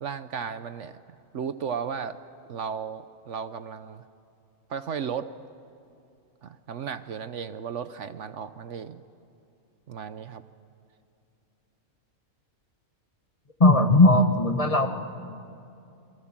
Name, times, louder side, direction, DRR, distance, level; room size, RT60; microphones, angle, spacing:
voice 1, 0.0-1.0 1.3-2.2 2.5-4.0 4.7-5.3 6.4-9.0 9.9-10.4, right 7 dB, 65° right, 11 dB, 1.1 m, -34 dB
voice 2, 13.6-14.9, left 2 dB, 25° left, 6 dB, 1.3 m, -18 dB
28.0 x 23.0 x 7.4 m, 2.6 s
omnidirectional pair, 1.4 m